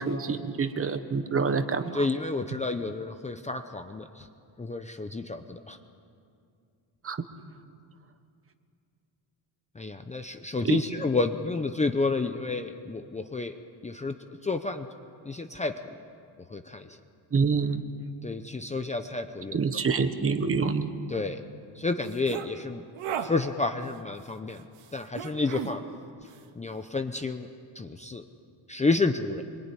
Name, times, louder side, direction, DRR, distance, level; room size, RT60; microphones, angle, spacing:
voice 1, 0.0-2.1 7.0-7.2 10.6-10.8 17.3-17.8 19.5-20.9, right 5 dB, 30° right, 9 dB, 1.2 m, -27 dB
voice 2, 1.9-4.3 4.6-5.8 9.7-13.6 13.8-14.2 14.4-14.9 15.2-16.0 16.5-17.0 18.2-19.6 21.1-21.4 21.7-22.8 23.2-24.6 24.9-25.8 26.6-27.5 27.7-28.2 28.7-29.4, left 3 dB, 15° left, 7 dB, 0.7 m, -30 dB
sound 1, 22.1-22.5 23.0-23.3 25.1-25.8, right 8 dB, 85° right, 2.1 m, -33 dB
26.0 x 23.5 x 9.8 m, 2.4 s
cardioid pair, 175°, 48 cm